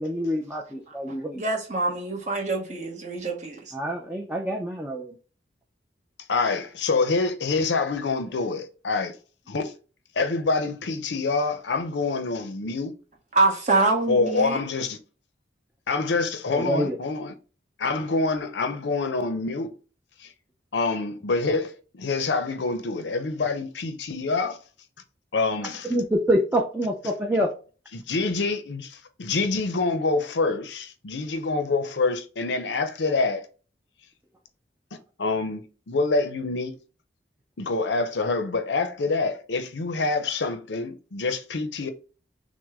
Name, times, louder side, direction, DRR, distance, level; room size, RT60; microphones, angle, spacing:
voice 1, 0.0-1.4 3.7-5.2 16.5-17.0 25.8-27.5, equal, 10° right, 0.5 m, -26 dB
voice 2, 1.3-3.6 13.3-14.6, right 3 dB, 40° right, 1.1 m, -25 dB
voice 3, 6.3-9.1 9.5-9.7 10.2-12.9 14.1-15.0 15.9-17.3 17.8-19.7 20.2-20.3 20.7-24.6 25.3-25.9 27.9-33.5 34.9-36.8 37.6-41.9, left 3 dB, 70° left, 0.6 m, -26 dB
6.2 x 2.1 x 3.5 m
head